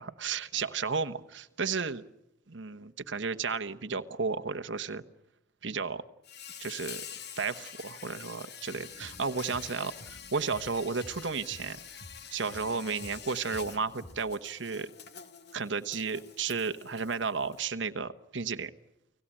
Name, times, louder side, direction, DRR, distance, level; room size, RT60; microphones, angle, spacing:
voice 1, 0.0-2.0 2.5-5.0 5.6-6.0 6.6-7.0 7.4-11.8 12.3-14.9 15.5-18.7, right 5 dB, 65° right, 9 dB, 1.1 m, -33 dB
Insect, 6.2-17.7, left 8 dB, 60° left, 2.1 m, -47 dB
sound 1, 8.7-14.2, left 1 dB, 80° left, 4.6 m, -52 dB
29.5 x 18.5 x 8.8 m, 0.84 s
head